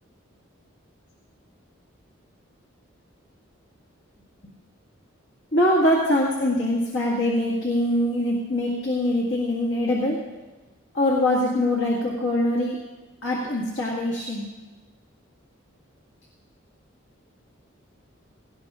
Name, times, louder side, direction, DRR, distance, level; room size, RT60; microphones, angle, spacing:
voice 1, 5.5-10.2 10.9-12.8 13.2-14.5, left 1 dB, 60° left, -4 dB, 1.9 m, -23 dB
18.0 x 17.5 x 2.5 m, 1.2 s
head